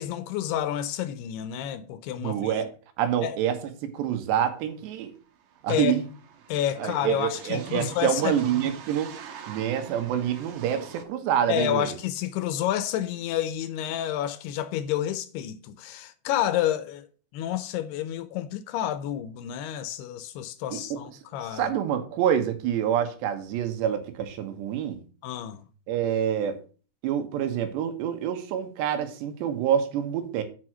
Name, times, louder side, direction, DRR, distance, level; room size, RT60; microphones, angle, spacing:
voice 1, 0.0-2.5 3.2-3.4 5.7-6.0 6.5-8.7 11.5-17.1 17.3-21.7 25.2-25.6, left 11 dB, 80° left, 2.6 m, -29 dB
voice 2, 2.2-2.7 3.0-3.6 3.8-5.1 5.6-6.1 6.8-9.1 9.5-12.0 20.7-21.0 21.5-25.0 25.9-26.6 27.0-30.4, right 9 dB, 85° right, 3.4 m, -27 dB
sound 1, 4.5-4.6 4.8-11.0, right 7 dB, 65° right, 2.2 m, -45 dB
7.7 x 6.2 x 6.1 m
omnidirectional pair, 4.9 m